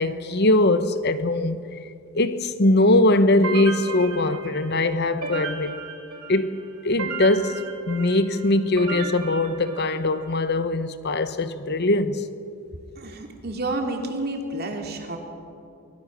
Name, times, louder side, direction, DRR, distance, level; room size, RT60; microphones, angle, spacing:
voice 1, 0.0-1.8 2.1-5.8 6.3-12.3, left 2 dB, 45° left, 0.9 m, -21 dB
sound 1, 3.4-10.4, right 4 dB, 90° right, 3.7 m, -35 dB
voice 2, 13.0-15.2, right 2 dB, 45° right, 2.8 m, -30 dB
24.5 x 20.5 x 6.5 m
head